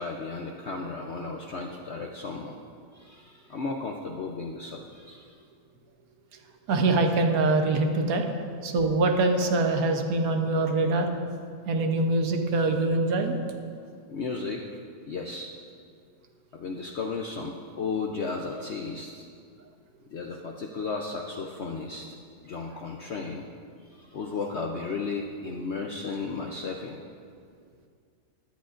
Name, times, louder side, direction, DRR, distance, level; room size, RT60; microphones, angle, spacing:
voice 1, 0.0-2.6 2.9-5.4 14.1-14.7 15.1-15.5 16.5-19.3 20.1-22.1 22.4-23.5 24.0-27.0, left 4 dB, 75° left, 1 dB, 0.6 m, -34 dB
voice 2, 6.7-8.2 8.6-11.1 11.7-13.4, right 2 dB, 60° right, 4 dB, 1.2 m, -24 dB
17.5 x 10.5 x 2.5 m, 2.2 s
omnidirectional pair, 2.0 m